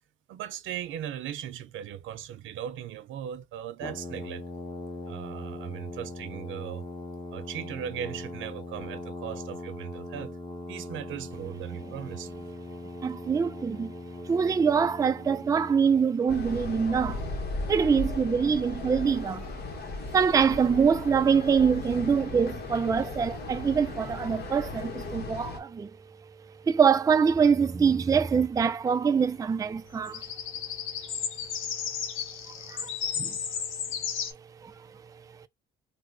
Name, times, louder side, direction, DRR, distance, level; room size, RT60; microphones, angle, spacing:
voice 1, 0.3-4.4 5.1-6.8 7.3-10.4 10.7-12.3, right 10 dB, 80° right, 0.6 m, -38 dB
Brass instrument, 3.8-16.1, left 2 dB, 25° left, 1.2 m, -40 dB
voice 2, 13.0-14.0 14.2-17.2 17.7-19.5 19.9-25.9 26.6-30.6 31.8-32.1 32.3-35.5, right 6 dB, 15° right, 0.3 m, -25 dB
sound 1, 16.3-25.6, left 2 dB, 55° left, 1.1 m, -36 dB
sound 2, 30.0-34.3, left 7 dB, 85° left, 0.7 m, -34 dB
2.8 x 2.1 x 3.8 m
cardioid pair, 90°, 20 cm